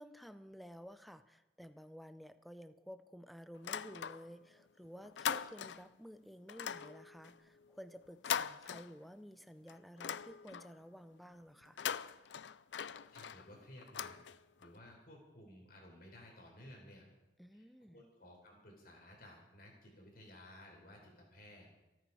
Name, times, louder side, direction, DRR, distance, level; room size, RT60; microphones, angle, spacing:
voice 1, 0.0-11.8 17.4-18.0, equal, ahead, 11 dB, 0.6 m, -53 dB
sound 1, 3.5-4.5 4.8-6.0 6.5-9.3 9.7-10.8 11.6-14.7, left 8 dB, 90° left, 0.5 m, -42 dB
voice 2, 13.1-14.2 14.6-17.1 17.5-21.7, left 1 dB, 55° left, 0 dB, 4.2 m, -56 dB
27.0 x 9.3 x 4.9 m, 1.0 s
head